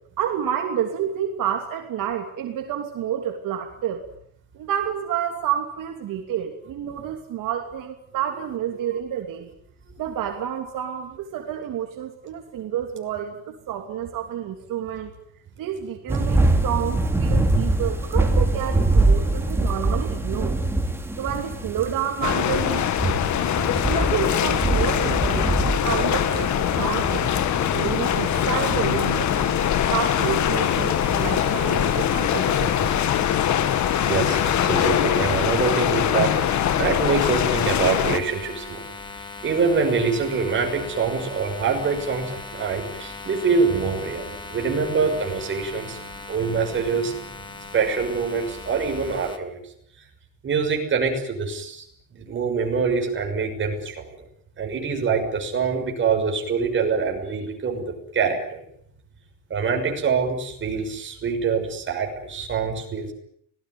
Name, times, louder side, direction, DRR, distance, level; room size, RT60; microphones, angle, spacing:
voice 1, 0.2-4.0 4.5-9.5 10.0-15.1 15.6-20.6 21.2-22.9 23.9-27.3 27.7-29.5 29.8-32.9, right 9 dB, 70° right, 3 dB, 3.0 m, -29 dB
sound 1, 16.1-33.0, right 2 dB, 5° right, 2.6 m, -25 dB
sound 2, 22.2-38.2, left 10 dB, 55° left, 1.6 m, -22 dB
sound 3, 30.6-49.4, left 3 dB, 15° left, 2.2 m, -39 dB
voice 2, 33.9-38.8 39.4-46.0 46.3-47.3 47.6-50.1 50.4-51.9 52.1-54.2 54.6-58.6 59.5-63.1, right 5 dB, 35° right, 3 dB, 6.2 m, -25 dB
25.5 x 19.0 x 9.5 m, 0.68 s
cardioid pair, 175°, 34 cm